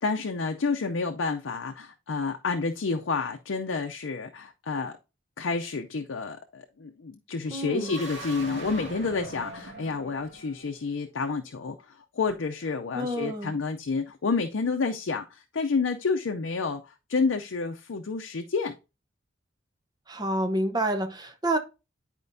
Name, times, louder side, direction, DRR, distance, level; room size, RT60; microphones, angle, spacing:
voice 1, 0.0-5.0 5.4-18.7, left 4 dB, 75° left, 0.5 m, -29 dB
voice 2, 7.5-7.9 12.9-13.6 20.1-21.6, right 1 dB, 20° right, 0.8 m, -28 dB
sound 1, 7.8-10.7, right 2 dB, 65° right, 2.2 m, -41 dB
10.5 x 4.4 x 2.6 m
head